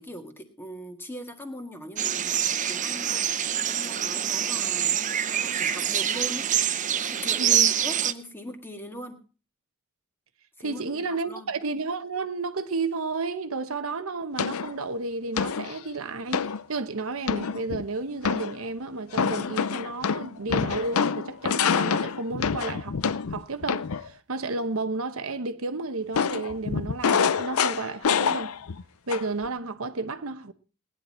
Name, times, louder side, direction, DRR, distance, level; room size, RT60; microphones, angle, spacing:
voice 1, 0.0-5.0 5.3-6.5 7.1-9.2 10.6-11.5, equal, 10° left, 1.8 m, -41 dB
sound 1, 2.0-8.1, right 9 dB, 35° right, 0.7 m, -25 dB
voice 2, 7.4-7.7 10.6-23.0 23.3-28.6 29.1-30.5, right 3 dB, 70° right, 1.0 m, -32 dB
sound 2, 14.4-14.8 15.4-15.8 16.3-16.6 17.3-17.8 18.2-18.6 19.1-24.1 26.1-28.8 29.1-29.5, left 6 dB, 85° left, 0.6 m, -26 dB
19.0 x 10.5 x 4.3 m
head